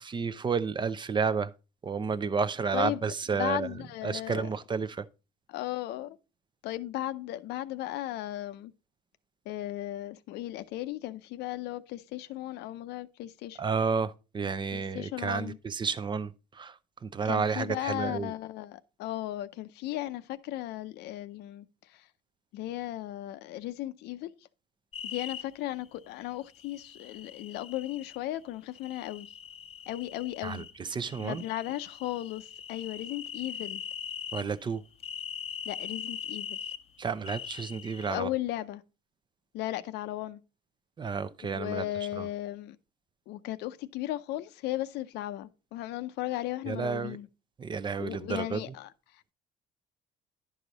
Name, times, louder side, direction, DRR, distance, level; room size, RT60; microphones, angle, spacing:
voice 1, 0.0-1.5 1.8-3.7 4.0-5.0 13.6-18.3 30.4-31.4 34.3-34.8 37.0-38.3 41.0-41.8 42.2-42.3 46.7-47.2 47.6-48.6, right 5 dB, 25° right, 0.5 m, -31 dB
voice 2, 2.7-3.1 3.3-4.5 5.5-6.2 6.6-8.7 9.5-13.6 14.7-15.6 17.2-22.1 22.5-24.3 25.0-29.3 29.9-30.7 31.2-33.8 35.7-36.7 38.1-38.8 39.5-40.4 41.4-42.8 43.3-47.3 48.0-49.3, left 15 dB, 85° left, 0.6 m, -36 dB
sound 1, 24.9-25.4 26.6-28.2 28.7-30.7 31.0-34.5 35.0-36.8 37.2-38.1, left 8 dB, 35° left, 0.6 m, -41 dB
10.5 x 4.9 x 4.0 m
cardioid pair, 110°, 17 cm